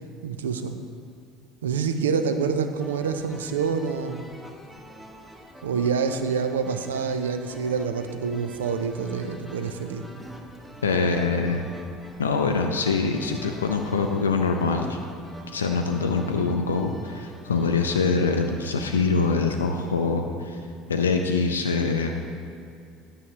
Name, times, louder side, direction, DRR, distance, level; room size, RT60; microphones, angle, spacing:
voice 1, 0.2-0.8 1.6-4.3 5.6-10.1, right 6 dB, 80° right, 8 dB, 0.4 m, -27 dB
sound 1, 2.8-19.3, right 1 dB, 5° right, 1.0 m, -46 dB
voice 2, 10.8-11.7 12.2-15.0 15.5-20.6 20.9-22.1, left 4 dB, 85° left, 4 dB, 0.4 m, -24 dB
9.4 x 6.5 x 3.0 m, 2.5 s
figure-of-eight pair, 65°, 0 cm